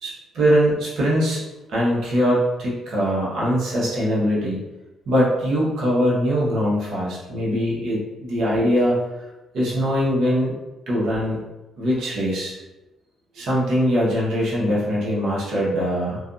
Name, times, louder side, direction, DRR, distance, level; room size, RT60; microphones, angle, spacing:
voice 1, 0.0-1.4 1.7-4.6 5.1-9.0 9.5-10.5 10.9-11.4 11.8-12.6 13.3-16.2, equal, 75° right, -6 dB, 0.9 m, -22 dB
2.5 x 2.3 x 2.5 m, 1.0 s
cardioid pair, 90°, 0 cm